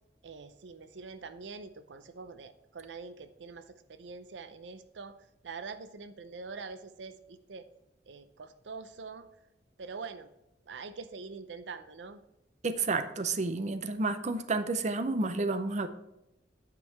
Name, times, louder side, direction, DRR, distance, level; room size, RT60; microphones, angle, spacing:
voice 1, 0.2-7.7 8.1-9.3 9.8-10.3 10.7-12.2, right 4 dB, 85° right, 11 dB, 0.6 m, -44 dB
voice 2, 12.6-15.9, right 3 dB, 40° right, 10 dB, 0.6 m, -30 dB
9.1 x 5.4 x 4.5 m, 0.87 s
head